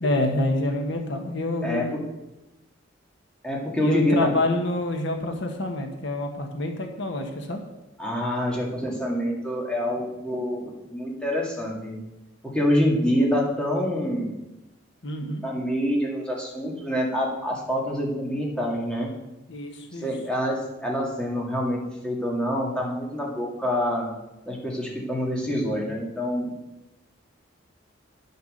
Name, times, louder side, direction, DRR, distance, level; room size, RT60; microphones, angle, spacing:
voice 1, 0.0-2.0 3.8-7.6 15.0-15.4 19.5-20.2, left 2 dB, 65° left, 3 dB, 1.3 m, -27 dB
voice 2, 1.6-2.0 3.4-4.3 8.0-12.0 12.4-14.3 15.2-19.1 20.0-24.1 24.5-26.5, equal, 5° left, -3 dB, 2.1 m, -26 dB
10.0 x 6.9 x 6.5 m, 0.98 s
head